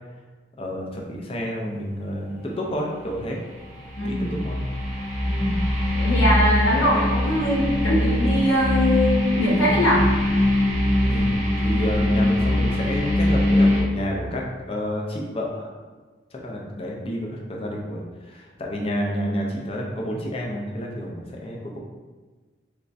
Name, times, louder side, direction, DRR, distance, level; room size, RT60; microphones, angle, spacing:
voice 1, 0.6-3.4 4.0-4.6 11.1-15.7 16.3-21.8, equal, 30° left, -1 dB, 0.5 m, -30 dB
sound 1, 3.1-13.8, left 1 dB, 40° right, 0.6 m, -22 dB
voice 2, 5.2-5.6 5.9-10.1, left 1 dB, 90° left, -4 dB, 1.0 m, -22 dB
3.5 x 3.1 x 2.6 m, 1.3 s
head